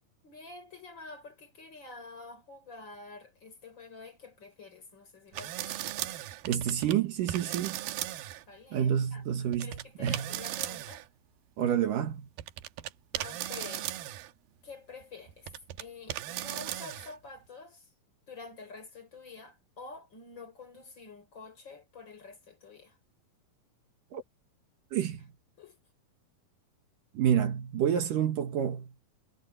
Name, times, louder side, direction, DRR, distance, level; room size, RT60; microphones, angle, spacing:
voice 1, 0.2-5.9 8.5-9.2 9.6-11.1 13.1-14.0 14.6-15.5 15.8-17.9 18.3-23.0 25.6-25.8, left 4 dB, 30° left, 4.6 m, -48 dB
sound 1, 5.3-6.9 7.3-8.4 9.5-11.1 12.1-12.2 12.4-14.3 15.0-15.8 16.1-17.2, right 13 dB, 90° right, 2.9 m, -37 dB
voice 2, 6.5-7.8 8.7-10.3 11.6-12.3 24.1-24.2 24.9-25.3 27.1-28.9, right 9 dB, 70° right, 3.0 m, -29 dB
omnidirectional pair, 4.2 m